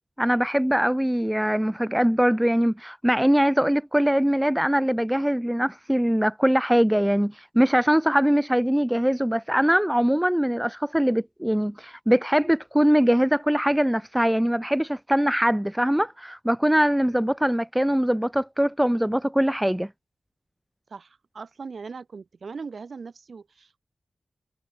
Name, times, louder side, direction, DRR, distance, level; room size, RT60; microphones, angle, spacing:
voice 1, 0.2-19.9, equal, 5° right, 0.4 m, -22 dB
voice 2, 20.9-23.8, right 5 dB, 60° right, 2.3 m, -39 dB
wide cardioid pair, 100°, 0 cm